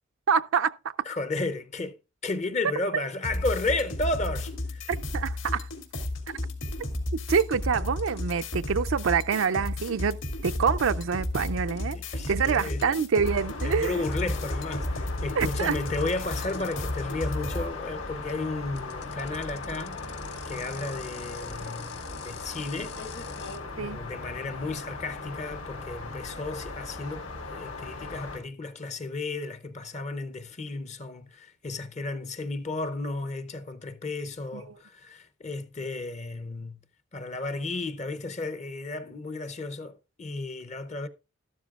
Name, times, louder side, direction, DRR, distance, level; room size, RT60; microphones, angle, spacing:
voice 1, 0.3-0.9 5.1-5.7 7.3-10.2 10.4-14.0 15.4-15.8 23.8-24.0 34.5-34.8, right 6 dB, 70° right, 0.4 m, -26 dB
voice 2, 1.1-2.0 2.2-4.9 11.8-12.9 13.6-20.2 20.4-23.3 23.8-36.8 37.1-41.1, left 2 dB, 35° left, 0.6 m, -33 dB
sound 1, 3.2-17.7, left 1 dB, 70° left, 2.4 m, -33 dB
sound 2, 5.6-5.8 6.1-7.1 7.8-13.2 13.4-23.6, left 7 dB, 55° left, 1.5 m, -48 dB
sound 3, 13.2-28.4, left 3 dB, 90° left, 4.1 m, -38 dB
12.5 x 12.0 x 2.4 m
head